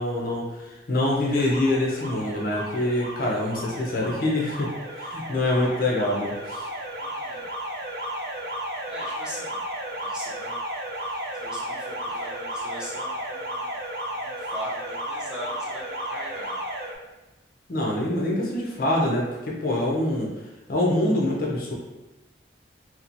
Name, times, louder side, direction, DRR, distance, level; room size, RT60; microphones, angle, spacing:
voice 1, 0.0-6.7 17.7-20.3 20.7-21.7, left 1 dB, 50° left, -3 dB, 0.6 m, -25 dB
Alarm, 1.3-17.0, equal, 60° right, 0.4 m, -34 dB
voice 2, 7.0-7.5 8.9-9.7 10.0-10.6 11.0-13.7 14.0-16.6, equal, 5° right, -6 dB, 0.4 m, -40 dB
2.8 x 2.1 x 2.6 m, 1.1 s
head